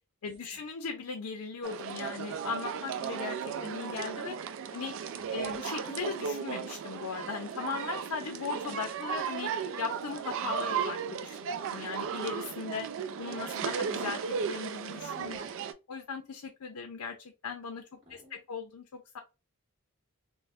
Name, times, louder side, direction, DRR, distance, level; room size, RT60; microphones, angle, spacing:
voice 1, 0.2-4.4 4.7-4.9 5.3-9.5 9.8-12.9 13.2-15.4 15.9-17.2 17.4-19.2, left 5 dB, 80° left, 0.5 m, -38 dB
sound 1, 1.6-15.7, right 7 dB, 60° right, 0.3 m, -35 dB
voice 2, 5.1-5.6 15.2-15.5 18.0-18.4, right 1 dB, 25° right, 1.2 m, -58 dB
2.5 x 2.1 x 3.3 m
head